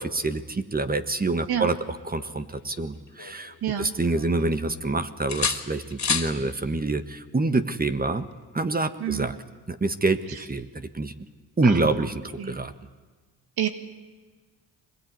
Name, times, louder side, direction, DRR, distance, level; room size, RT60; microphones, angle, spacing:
voice 1, 0.0-8.2 8.5-9.3 9.7-11.1 11.6-12.7, right 3 dB, 25° right, 10 dB, 1.5 m, -26 dB
sound 1, 2.2-3.7 4.1-4.9 5.3-6.4 8.2-8.4, left 6 dB, 45° left, 2.8 m, -31 dB
voice 2, 11.6-12.1 12.4-12.6 13.6-13.7, right 9 dB, 70° right, 8 dB, 2.1 m, -28 dB
23.5 x 21.0 x 9.6 m, 1.4 s
cardioid pair, 70°, 39 cm